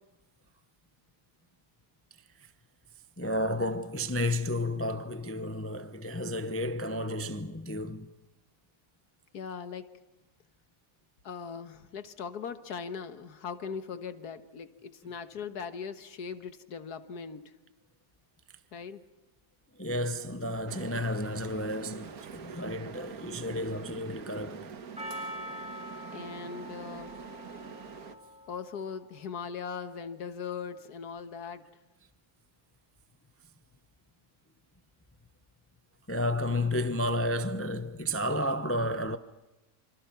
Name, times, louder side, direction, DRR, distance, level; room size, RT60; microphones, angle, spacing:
voice 1, 3.2-8.1 19.8-24.7 36.1-39.2, left 1 dB, 15° left, 0.4 m, -32 dB
voice 2, 9.3-9.9 11.2-17.5 18.7-19.0 26.1-27.1 28.5-31.7, left 6 dB, 70° left, 1.8 m, -39 dB
sound 1, 20.7-28.2, right 6 dB, 65° right, 1.7 m, -45 dB
Percussion, 25.0-29.3, equal, 5° right, 3.4 m, -44 dB
27.0 x 26.5 x 5.9 m
omnidirectional pair, 1.8 m